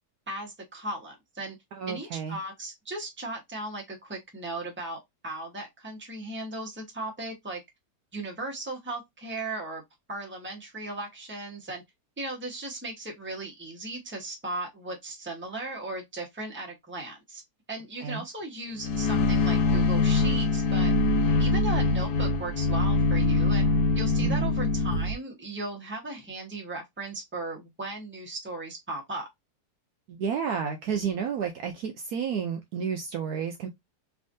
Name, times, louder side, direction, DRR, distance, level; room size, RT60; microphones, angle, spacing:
voice 1, 0.3-1.6 1.9-7.6 8.1-9.8 10.1-11.8 12.2-17.4 17.7-20.9 21.4-23.7 23.9-29.3, right 2 dB, 10° right, 0.9 m, -37 dB
voice 2, 1.7-2.4 18.0-18.2 24.2-24.5 30.1-33.7, right 7 dB, 70° right, 1.0 m, -31 dB
sound 1, 18.8-25.1, left 3 dB, 65° left, 1.2 m, -24 dB
3.5 x 3.3 x 2.6 m
omnidirectional pair, 1.9 m